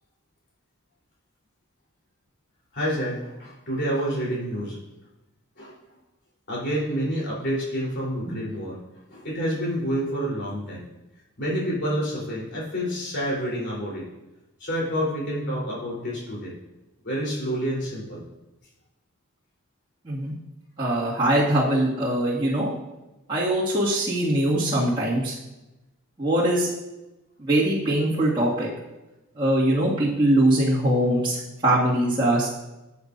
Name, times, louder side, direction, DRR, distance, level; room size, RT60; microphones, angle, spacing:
voice 1, 2.7-4.8 5.6-5.8 6.5-8.8 9.1-10.9 11.4-14.1 14.6-16.6 17.0-18.2, equal, 55° left, -4 dB, 3.9 m, -28 dB
voice 2, 20.8-22.7 23.3-25.3 26.2-26.7 27.4-28.7 29.4-31.4 31.6-32.5, right 1 dB, 25° right, -9 dB, 2.2 m, -22 dB
14.0 x 8.4 x 2.7 m, 1.0 s
head